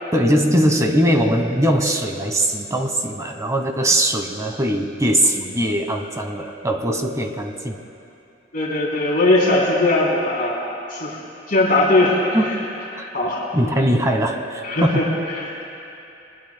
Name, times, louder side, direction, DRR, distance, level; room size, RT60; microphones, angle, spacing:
voice 1, 0.1-7.8 12.3-12.6 12.9-13.1 13.5-15.1, equal, 15° right, 4 dB, 1.1 m, -20 dB
voice 2, 8.5-10.6 10.9-11.2 11.5-12.6 13.1-13.4 14.6-15.5, left 2 dB, 50° left, -6 dB, 3.2 m, -19 dB
24.5 x 20.0 x 2.2 m, 2.8 s
head